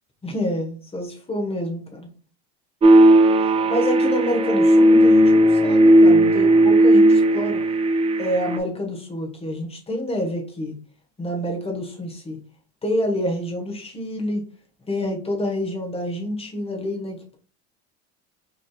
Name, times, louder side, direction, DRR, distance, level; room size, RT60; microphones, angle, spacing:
voice 1, 0.2-2.1 3.4-7.6 8.2-10.7 11.2-12.4 12.8-14.4 14.9-17.4, equal, 20° left, 1 dB, 1.2 m, -27 dB
sound 1, 2.8-8.6, right 1 dB, 20° right, 0.5 m, -15 dB
5.1 x 3.3 x 2.3 m, 0.39 s
supercardioid pair, 125°, 33 cm